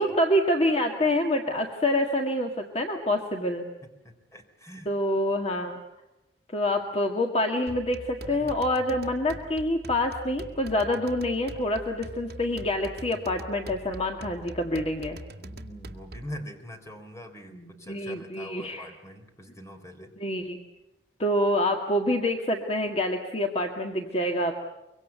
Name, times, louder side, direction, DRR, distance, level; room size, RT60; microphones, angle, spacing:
voice 1, 0.0-3.7 4.9-5.8 6.5-15.2 17.5-18.9 20.2-20.6 21.2-24.7, left 1 dB, 35° left, 3 dB, 1.9 m, -27 dB
voice 2, 3.8-4.9 8.3-8.6 15.3-20.2, equal, 15° left, 5 dB, 3.7 m, -43 dB
sound 1, 7.7-16.4, right 1 dB, 60° right, 2.2 m, -43 dB
24.5 x 24.0 x 8.1 m, 0.96 s
head